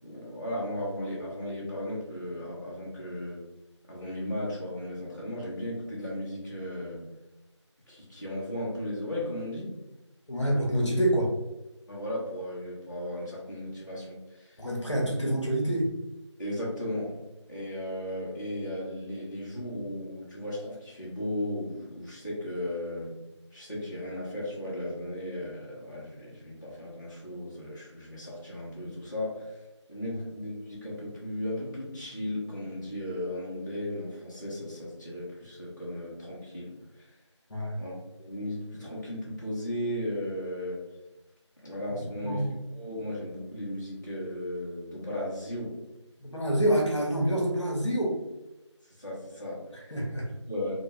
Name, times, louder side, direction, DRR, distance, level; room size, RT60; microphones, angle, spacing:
voice 1, 0.0-3.5 3.9-7.1 7.9-9.8 11.9-14.7 16.4-17.2 17.5-23.1 23.5-29.6 29.9-37.2 37.8-37.9 38.2-40.8 41.6-42.5 42.7-45.8 48.8-49.9 50.3-50.7, left 1 dB, 40° left, -8 dB, 0.8 m, -36 dB
voice 2, 10.3-11.3 14.6-15.9 37.5-37.8 42.2-42.5 46.2-48.2 49.9-50.3, right 1 dB, 70° left, -2 dB, 0.9 m, -27 dB
2.5 x 2.2 x 3.1 m, 1.0 s
figure-of-eight pair, 180°, 16 cm